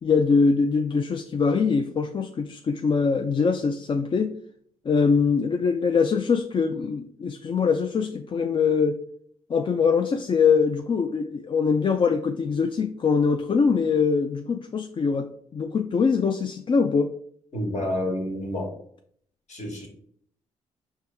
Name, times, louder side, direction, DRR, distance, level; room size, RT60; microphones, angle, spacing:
voice 1, 0.0-4.3 4.9-9.0 9.5-17.1, left 5 dB, 40° left, 5 dB, 0.4 m, -23 dB
voice 2, 17.5-18.7 19.5-19.9, left 1 dB, 55° left, 1 dB, 1.4 m, -29 dB
4.5 x 2.7 x 3.4 m, 0.63 s
supercardioid pair, 50°, 14 cm